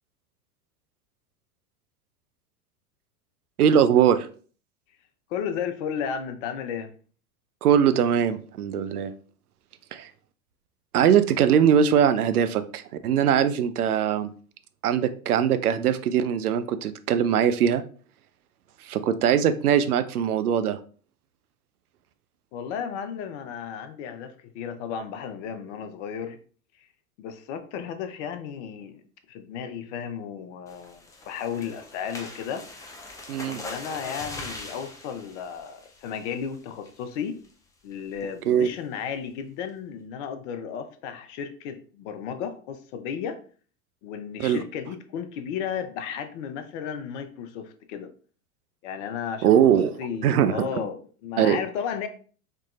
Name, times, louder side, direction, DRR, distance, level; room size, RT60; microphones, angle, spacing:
voice 1, 3.6-4.3 7.6-9.1 9.9-10.1 10.9-14.3 14.8-17.8 18.8-20.8 33.3-33.6 38.5-38.7 44.4-44.6 49.4-50.9 51.4-51.6, right 9 dB, 80° right, 12 dB, 0.5 m, -21 dB
voice 2, 5.3-6.9 22.5-26.4 27.2-29.0 29.3-32.6 33.4-37.4 37.8-43.4 44.0-48.1 48.8-49.5 50.0-52.1, left 7 dB, 55° left, 8 dB, 0.7 m, -34 dB
sound 1, 30.7-36.4 36.9-37.1 37.4-37.5 37.9-38.2, left 2 dB, 10° left, 0.3 m, -41 dB
4.5 x 3.0 x 2.4 m, 0.42 s
figure-of-eight pair, 85°, 44 cm